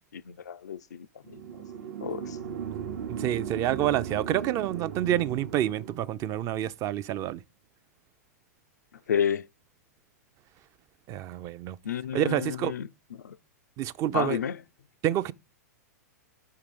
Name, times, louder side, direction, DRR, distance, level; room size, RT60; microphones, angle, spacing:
voice 1, 0.1-1.4 2.0-2.4 9.1-9.5 11.8-12.9 13.2-13.4 14.1-14.6, left 8 dB, 85° left, 0.3 m, -31 dB
sound 1, 1.2-6.2, right 8 dB, 70° right, 0.8 m, -37 dB
voice 2, 3.1-7.4 11.1-11.8 12.1-12.7 13.8-14.4 15.0-15.3, right 12 dB, 35° right, 0.4 m, -28 dB
5.2 x 4.7 x 5.2 m
hypercardioid pair, 110°, 9 cm